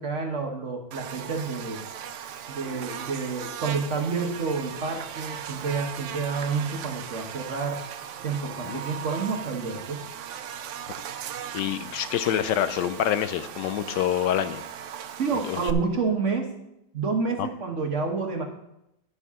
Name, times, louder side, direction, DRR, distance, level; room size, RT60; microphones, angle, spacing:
voice 1, 0.0-1.8 2.5-7.8 8.2-10.0 15.2-16.5 16.9-18.5, right 4 dB, 45° right, 3 dB, 1.2 m, -29 dB
Buzz, 0.9-15.7, right 9 dB, 90° right, 0.6 m, -38 dB
voice 2, 11.5-14.6 15.4-15.6 17.4-17.5, left 10 dB, 80° left, 12 dB, 1.2 m, -26 dB
11.0 x 10.0 x 3.6 m, 0.85 s
omnidirectional pair, 2.0 m